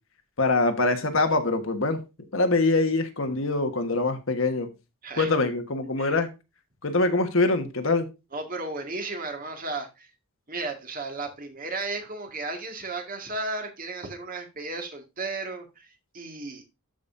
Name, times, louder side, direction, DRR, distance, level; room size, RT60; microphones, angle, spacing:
voice 1, 0.4-2.0 2.3-4.7 5.2-6.3 6.8-8.1, left 3 dB, 65° left, 1.4 m, -24 dB
voice 2, 5.0-5.4 6.0-6.1 8.3-10.1 10.5-16.7, right 3 dB, 40° right, 1.9 m, -34 dB
12.5 x 5.3 x 2.6 m
head